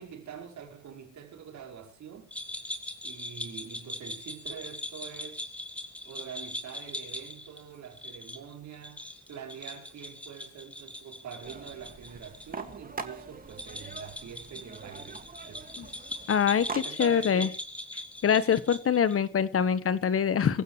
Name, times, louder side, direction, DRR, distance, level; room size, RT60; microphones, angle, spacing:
voice 1, 0.0-2.3 3.0-5.5 6.0-16.0 16.7-17.6, right 8 dB, 70° right, 5.2 m, -45 dB
sound 1, 2.3-12.5 12.7-12.8 13.5-19.2, left 1 dB, 5° left, 3.6 m, -41 dB
sound 2, 11.4-16.8, right 4 dB, 30° right, 2.3 m, -43 dB
voice 2, 16.3-17.5 18.2-20.6, left 7 dB, 50° left, 1.3 m, -24 dB
24.5 x 15.5 x 3.3 m
cardioid pair, 90°, 30 cm